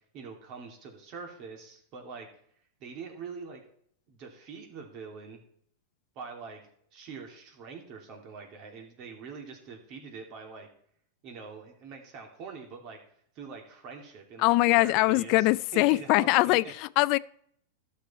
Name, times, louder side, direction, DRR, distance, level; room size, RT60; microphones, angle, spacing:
voice 1, 0.1-2.3 2.8-3.6 4.1-5.4 6.1-6.6 6.9-10.7 11.2-13.0 13.3-16.7, right 5 dB, 45° right, 2.8 m, -44 dB
voice 2, 14.4-17.2, left 21 dB, 50° left, 0.4 m, -23 dB
13.0 x 6.7 x 4.3 m
hypercardioid pair, 115°, 0 cm